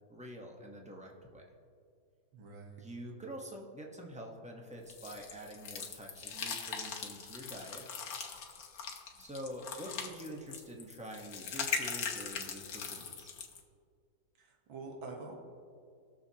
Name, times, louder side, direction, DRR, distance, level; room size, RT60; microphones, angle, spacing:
voice 1, 0.1-1.4 2.8-7.8 9.2-13.3, equal, 5° right, 0 dB, 0.7 m, -46 dB
voice 2, 2.3-2.8 14.4-15.3, right 3 dB, 85° right, 1 dB, 2.1 m, -46 dB
sound 1, 4.9-13.6, left 6 dB, 55° left, 1.3 m, -40 dB
20.0 x 7.0 x 2.9 m, 2.2 s
omnidirectional pair, 2.1 m